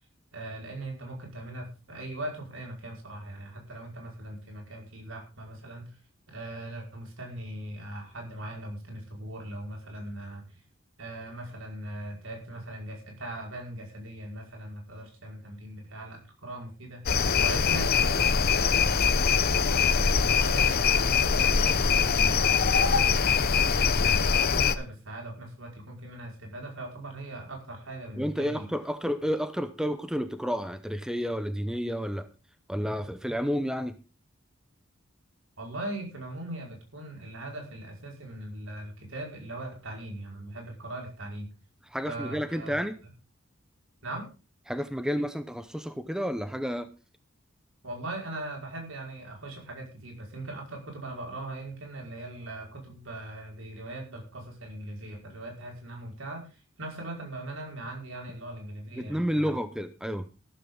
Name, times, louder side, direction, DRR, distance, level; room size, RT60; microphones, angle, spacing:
voice 1, 0.3-6.0 6.3-10.6 11.0-23.4 24.0-28.7 35.6-41.5 42.1-42.8 44.0-44.3 47.8-59.6, right 1 dB, 75° right, 1 dB, 5.5 m, -40 dB
sound 1, 17.1-24.8, left 6 dB, 50° left, 0.9 m, -23 dB
voice 2, 28.2-32.3 32.7-33.9 41.9-43.0 44.7-46.9 59.0-60.3, equal, 5° right, 10 dB, 0.9 m, -30 dB
14.0 x 13.0 x 4.0 m, 0.32 s
head